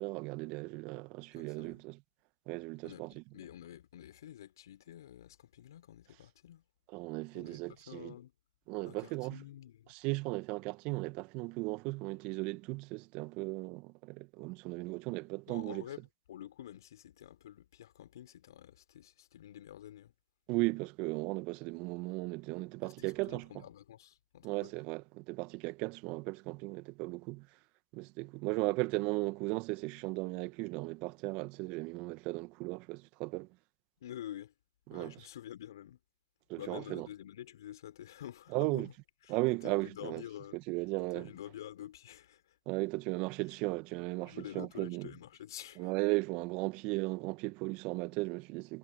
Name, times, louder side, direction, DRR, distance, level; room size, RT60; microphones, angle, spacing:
voice 1, 0.0-2.0 2.5-3.1 6.9-8.1 8.7-9.4 9.9-15.8 20.5-23.6 24.4-27.5 27.9-33.5 34.9-35.3 36.5-37.1 38.5-38.9 39.3-40.2 40.7-41.3 42.6-45.1 45.8-48.8, right 25 dB, 50° right, 1.6 m, -36 dB
voice 2, 1.3-1.8 2.8-6.6 7.3-8.3 8.8-9.9 15.5-16.0 16.3-20.1 22.8-24.7 34.0-34.5 34.9-36.0 36.6-38.9 39.3-40.6 41.1-42.6 44.2-45.9, left 11 dB, 70° left, 4.6 m, -48 dB
hypercardioid pair, 95°, 2 cm